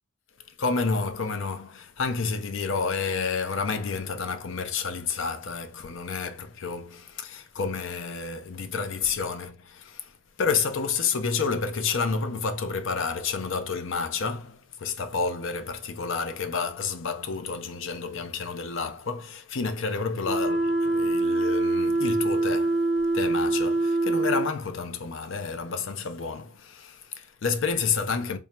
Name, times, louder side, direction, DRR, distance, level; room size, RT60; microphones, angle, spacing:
voice 1, 0.6-10.1 10.4-22.9 23.1-28.4, left 5 dB, 65° left, 0.5 m, -30 dB
sound 1, 20.2-24.5, right 2 dB, ahead, 0.7 m, -24 dB
3.6 x 2.1 x 4.2 m
head